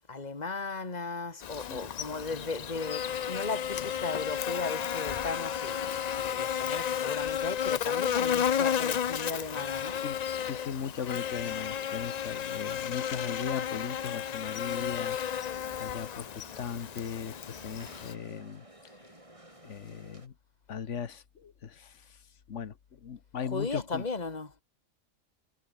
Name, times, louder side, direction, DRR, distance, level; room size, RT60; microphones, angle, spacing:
voice 1, 0.1-10.1 23.5-24.5, left 4 dB, 30° left, 2.5 m, -36 dB
Buzz, 1.4-18.1, left 9 dB, 85° left, 0.3 m, -33 dB
sound 1, 2.1-20.3, right 1 dB, 25° right, 5.1 m, -54 dB
voice 2, 10.4-19.1 19.6-20.3 20.7-24.1, left 7 dB, 60° left, 1.5 m, -38 dB
omnidirectional pair, 1.4 m